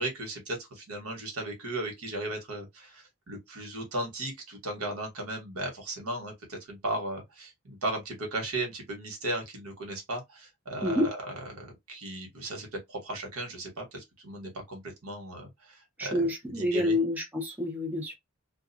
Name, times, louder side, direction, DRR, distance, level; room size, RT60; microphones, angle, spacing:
voice 1, 0.0-11.1 11.5-17.0, right 2 dB, 80° right, 1.1 m, -36 dB
voice 2, 16.0-18.1, left 1 dB, 10° right, 0.5 m, -28 dB
2.4 x 2.3 x 2.5 m
head